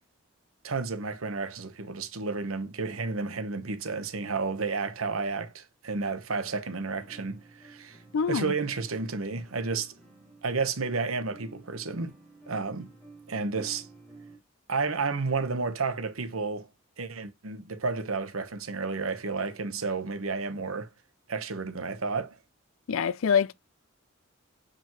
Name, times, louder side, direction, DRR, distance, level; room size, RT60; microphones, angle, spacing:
voice 1, 0.6-8.0 8.3-9.9 10.4-12.1 12.5-12.9 13.3-13.9 14.7-16.7 17.0-20.9 21.3-22.4, right 4 dB, 90° right, 1.1 m, -31 dB
sound 1, 6.9-14.4, right 3 dB, 5° left, 4.6 m, -52 dB
voice 2, 8.1-8.5 22.9-23.5, left 6 dB, 80° left, 0.4 m, -25 dB
7.5 x 5.1 x 3.0 m
head